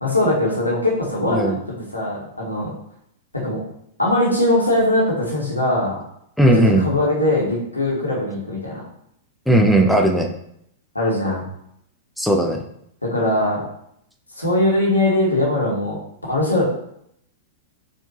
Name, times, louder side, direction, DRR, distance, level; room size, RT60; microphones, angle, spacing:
voice 1, 0.0-2.7 3.3-3.6 4.0-6.0 6.4-8.8 10.9-11.4 13.0-13.6 14.4-16.0 16.3-16.6, left 1 dB, 90° left, -4 dB, 1.3 m, -21 dB
voice 2, 6.4-6.9 9.5-10.3 12.2-12.6, right 1 dB, ahead, 2 dB, 0.6 m, -16 dB
4.3 x 2.8 x 2.9 m, 0.73 s
figure-of-eight pair, 100°, 0 cm